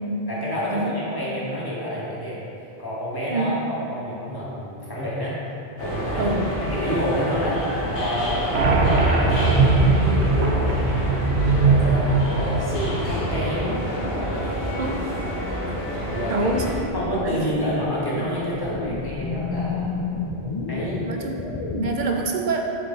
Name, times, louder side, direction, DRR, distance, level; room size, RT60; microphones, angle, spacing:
voice 1, 0.3-2.4 2.8-5.4 5.8-8.5 8.7-10.9 11.6-14.8 16.1-16.5 16.9-19.9 20.7-21.0, equal, 20° left, -7 dB, 1.5 m, -29 dB
voice 2, 3.3-3.6 6.2-6.5 14.8-15.0 16.3-17.4 21.0-21.3 21.7-22.6, right 3 dB, 55° right, 2 dB, 0.7 m, -26 dB
sound 1, 5.8-16.8, equal, 70° left, 1.7 m, -28 dB
sound 2, 8.5-13.8, right 3 dB, 90° right, 1.1 m, -20 dB
sound 3, 16.5-21.9, left 4 dB, 45° left, 0.4 m, -31 dB
7.2 x 4.7 x 3.9 m, 2.7 s
omnidirectional pair, 1.1 m